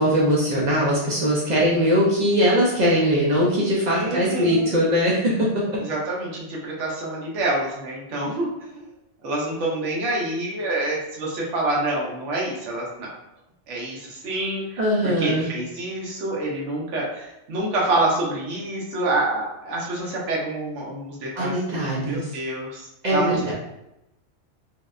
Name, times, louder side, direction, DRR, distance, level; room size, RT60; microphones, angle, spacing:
voice 1, 0.0-5.6 14.8-15.5 21.4-22.2 23.0-23.4, equal, 60° right, -4 dB, 0.4 m, -21 dB
voice 2, 3.9-4.8 5.8-8.5 8.7-8.8 9.2-13.1 13.7-21.6 22.0-22.9 23.1-23.5, right 2 dB, 80° right, -3 dB, 1.0 m, -27 dB
2.7 x 2.1 x 2.3 m, 0.88 s
omnidirectional pair, 1.2 m